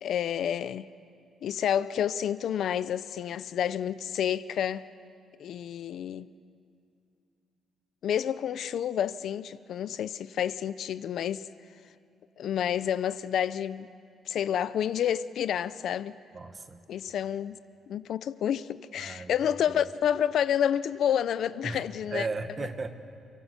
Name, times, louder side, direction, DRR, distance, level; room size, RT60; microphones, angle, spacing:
voice 1, 0.0-0.9 1.4-4.9 5.4-6.3 8.0-11.5 12.4-13.9 14.3-16.2 16.9-17.6 17.9-22.3, left 9 dB, 60° left, 0.5 m, -29 dB
voice 2, 16.3-16.8 19.0-19.3 21.6-21.8 22.1-22.9, right 3 dB, 25° right, 1.3 m, -35 dB
29.5 x 17.5 x 8.2 m
cardioid pair, 170°, 0 cm